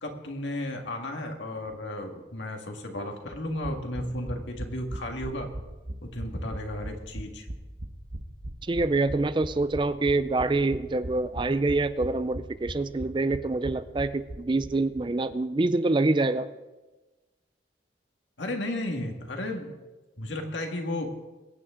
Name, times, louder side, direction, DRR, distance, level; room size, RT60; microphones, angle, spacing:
voice 1, 0.0-5.5 6.0-7.5 18.4-19.7 20.2-21.1, left 1 dB, 75° left, 3 dB, 1.8 m, -34 dB
sound 1, 3.3-15.0 15.3-15.4 15.6-15.7, right 1 dB, 45° right, 1.1 m, -39 dB
voice 2, 8.6-16.5, right 2 dB, 25° right, 13 dB, 0.4 m, -26 dB
23.0 x 9.2 x 3.7 m, 1.2 s
head